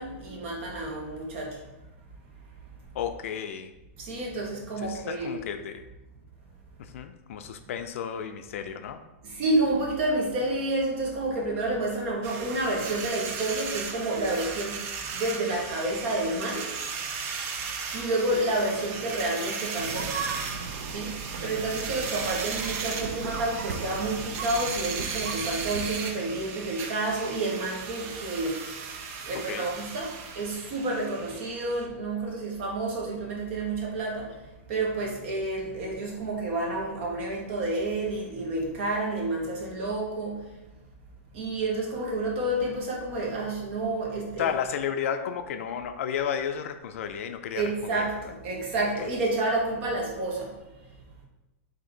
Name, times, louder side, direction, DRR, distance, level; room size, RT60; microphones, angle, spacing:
voice 1, 0.0-1.6 4.0-5.5 9.2-16.7 17.9-20.2 20.8-28.6 29.2-34.4 34.7-40.4 41.3-44.5 47.5-50.5, right 2 dB, 55° right, -2 dB, 1.3 m, -29 dB
voice 2, 2.9-3.7 4.8-5.8 6.8-9.0 29.3-29.7 44.4-47.6 47.9-48.0 49.0-49.1, left 8 dB, 70° left, 8 dB, 0.3 m, -32 dB
sound 1, 12.2-31.9, right 5 dB, 30° right, 0.4 m, -36 dB
sound 2, 19.7-25.9, right 5 dB, 90° right, 0.5 m, -37 dB
3.8 x 2.7 x 4.2 m, 1.0 s
supercardioid pair, 155°, 8 cm